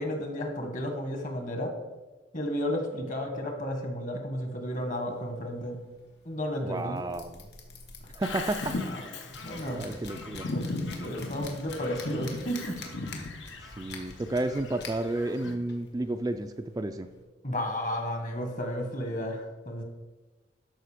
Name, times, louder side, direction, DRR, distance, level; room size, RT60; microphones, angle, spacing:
voice 1, 0.0-1.7 2.3-5.8 6.2-7.0 9.4-9.8 10.5-12.8 17.4-19.8, equal, 40° left, 4 dB, 1.5 m, -32 dB
sound 1, 4.6-17.2, left 3 dB, 60° left, 1.7 m, -48 dB
voice 2, 6.6-7.4 8.2-8.7 9.7-10.5 13.8-17.1, right 2 dB, 20° right, 7 dB, 0.3 m, -31 dB
Bird vocalization bird call bird song, 8.2-15.6, left 3 dB, 85° left, 1.2 m, -38 dB
12.5 x 5.1 x 5.0 m, 1.2 s
head